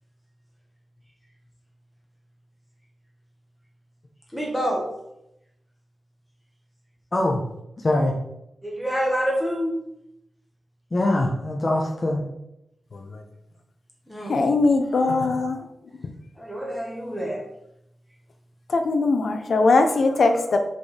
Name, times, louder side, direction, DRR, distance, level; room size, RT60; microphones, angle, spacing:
voice 1, 4.3-4.8 8.6-9.8 14.1-14.4 16.4-17.4, equal, ahead, -3 dB, 1.5 m, -27 dB
voice 2, 7.1-7.4 7.8-8.1 10.9-12.3, left 1 dB, 30° left, -1 dB, 0.9 m, -23 dB
voice 3, 12.9-13.2 14.2-15.6 18.7-20.6, left 3 dB, 55° left, 6 dB, 0.8 m, -21 dB
6.7 x 5.3 x 3.4 m, 0.83 s
wide cardioid pair, 125°, 0 cm